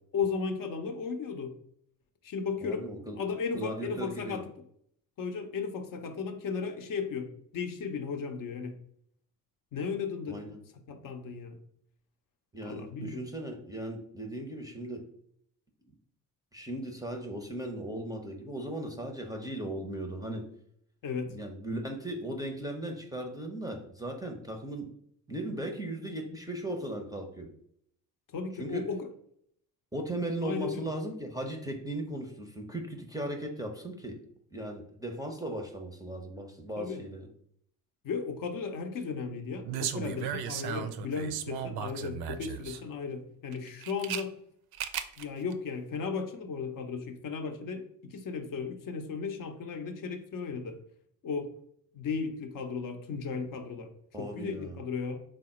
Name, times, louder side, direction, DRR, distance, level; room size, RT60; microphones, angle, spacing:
voice 1, 0.1-1.5 2.2-2.9 3.2-4.5 5.2-8.7 9.7-10.4 10.9-11.6 12.6-13.3 21.0-21.3 28.3-29.1 30.4-30.9 36.8-37.0 38.0-44.3 45.2-50.8 51.2-51.5 51.9-53.9 54.2-55.2, left 5 dB, 45° left, 5 dB, 0.6 m, -35 dB
voice 2, 2.6-3.2 3.5-4.4 10.3-10.6 12.5-15.0 16.5-20.5 21.3-24.9 25.3-27.5 28.6-28.9 29.9-34.2 34.5-37.3 54.1-54.8, right 1 dB, 10° right, 2 dB, 0.6 m, -37 dB
sound 1, 39.6-42.8 43.5-44.2 44.7-45.2 45.5-45.6, right 9 dB, 50° right, 0.5 m, -35 dB
3.4 x 2.0 x 4.1 m, 0.69 s
hypercardioid pair, 45°, 48 cm